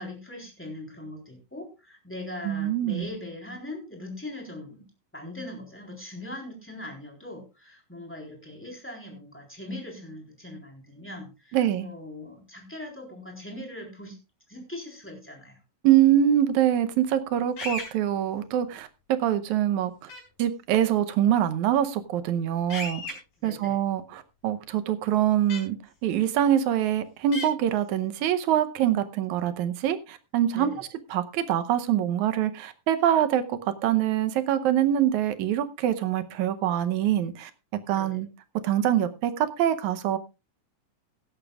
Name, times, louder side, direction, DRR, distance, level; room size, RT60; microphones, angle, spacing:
voice 1, 0.0-4.9 5.1-14.2 14.5-15.6 23.4-23.8 30.5-30.8 37.9-38.2, left 1 dB, 5° left, 1 dB, 3.5 m, -40 dB
voice 2, 2.5-3.1 11.5-11.9 15.8-20.1 20.4-23.0 23.4-25.8 26.0-37.5 37.9-38.3 38.6-40.2, right 11 dB, 75° right, 10 dB, 2.0 m, -24 dB
sound 1, 17.6-17.9 20.1-20.2 22.7-23.1 25.5-25.6 27.3-27.5, left 2 dB, 80° left, 5.9 m, -33 dB
16.5 x 12.5 x 2.4 m, 0.28 s
omnidirectional pair, 3.9 m